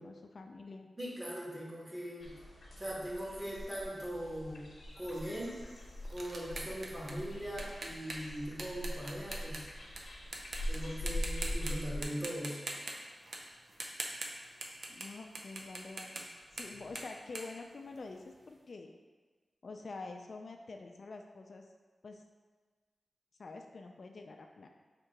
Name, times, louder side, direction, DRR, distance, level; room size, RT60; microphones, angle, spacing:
voice 1, 0.0-0.9 14.9-16.2 16.5-18.9 19.6-21.7 22.0-22.2 23.4-24.7, left 3 dB, 65° left, 4 dB, 0.3 m, -47 dB
voice 2, 1.0-2.3 2.8-4.6 5.0-5.6 6.1-9.6 10.7-12.6, equal, 25° right, -5 dB, 1.3 m, -40 dB
sound 1, 2.2-12.1, equal, 85° left, 0.8 m, -42 dB
sound 2, 5.1-10.0 10.3-10.8 11.1-11.7 12.0-15.1 15.3-18.4, right 2 dB, 75° right, 0.5 m, -43 dB
3.6 x 2.9 x 4.5 m, 1.4 s
wide cardioid pair, 70°, 0 cm